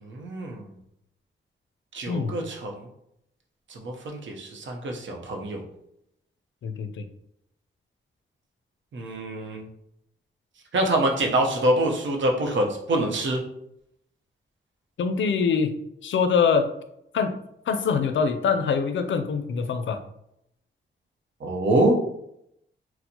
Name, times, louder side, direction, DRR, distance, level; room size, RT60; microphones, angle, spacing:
voice 1, 0.0-0.7 1.9-2.8 3.7-5.6 8.9-9.6 10.7-13.4 21.4-22.0, right 1 dB, 70° right, 1 dB, 0.7 m, -25 dB
voice 2, 2.1-2.4 6.6-7.1 15.0-16.7 17.1-17.4 17.7-20.0, left 5 dB, 70° left, 9 dB, 0.4 m, -24 dB
4.2 x 2.1 x 2.7 m, 0.77 s
cardioid pair, 75°, 20 cm